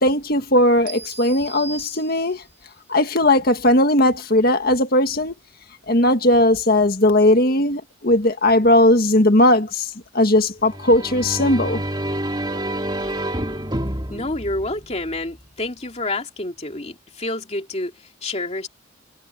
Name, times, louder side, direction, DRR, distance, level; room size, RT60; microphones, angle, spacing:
voice 1, 0.0-2.4 2.9-5.3 5.9-11.8, left 1 dB, 50° left, 1.8 m, -18 dB
sound 1, 0.9-2.6, right 3 dB, 45° right, 5.8 m, -38 dB
sound 2, 10.6-15.4, right 1 dB, 20° right, 2.5 m, -28 dB
voice 2, 14.1-18.7, left 2 dB, 35° left, 2.6 m, -28 dB
head